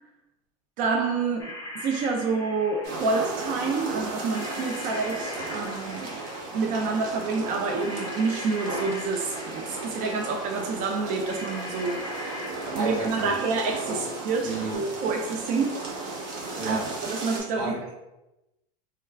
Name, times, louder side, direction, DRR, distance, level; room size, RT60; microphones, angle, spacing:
voice 1, 0.8-6.2 6.5-12.4 12.7-15.9 16.6-16.8 17.1-17.8, right 4 dB, 40° right, 3 dB, 0.4 m, -28 dB
sound 1, 1.4-3.3 4.3-6.7 7.8-10.2 11.2-13.7 14.7-14.8, left 2 dB, 15° left, 0.6 m, -41 dB
sound 2, 2.8-17.4, right 2 dB, 60° right, 1.0 m, -35 dB
voice 2, 12.6-14.0 14.4-14.8 16.5-16.9 17.6-17.9, right 3 dB, 90° right, -4 dB, 1.3 m, -33 dB
4.3 x 2.2 x 2.3 m, 0.96 s
supercardioid pair, 130°, 20 cm